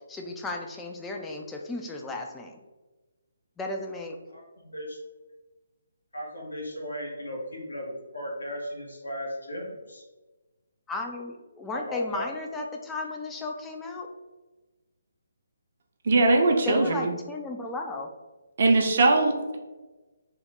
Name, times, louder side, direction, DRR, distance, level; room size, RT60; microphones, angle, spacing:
voice 1, 0.1-2.6 3.6-4.2 10.9-14.1 16.7-18.1, left 2 dB, 10° left, 2 dB, 0.3 m, -34 dB
voice 2, 4.3-5.0 6.1-10.0 11.7-12.3, equal, 75° left, -1 dB, 0.9 m, -36 dB
voice 3, 16.0-17.1 18.6-19.6, right 2 dB, 50° right, 2 dB, 0.5 m, -21 dB
2.8 x 2.1 x 3.5 m, 1.2 s
figure-of-eight pair, 140°, 0 cm